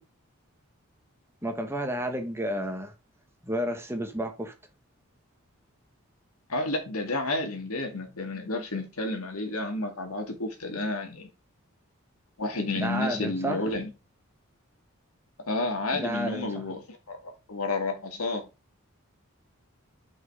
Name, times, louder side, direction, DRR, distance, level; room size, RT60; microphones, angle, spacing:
voice 1, 1.4-2.9 3.4-4.5 12.7-13.6 15.9-16.5, right 1 dB, 10° right, 1.2 m, -31 dB
voice 2, 6.5-11.3 12.4-13.9 15.4-18.5, left 2 dB, 85° left, 2.3 m, -31 dB
6.2 x 5.6 x 4.8 m
head